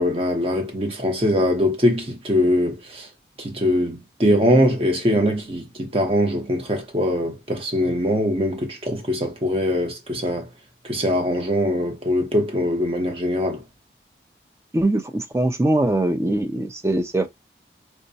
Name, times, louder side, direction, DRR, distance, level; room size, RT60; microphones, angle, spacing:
voice 1, 0.0-3.1 3.4-10.5 10.8-13.6, equal, 30° right, 0.8 m, -22 dB
voice 2, 14.7-17.3, right 1 dB, 15° right, 0.4 m, -22 dB
4.5 x 2.1 x 2.7 m
head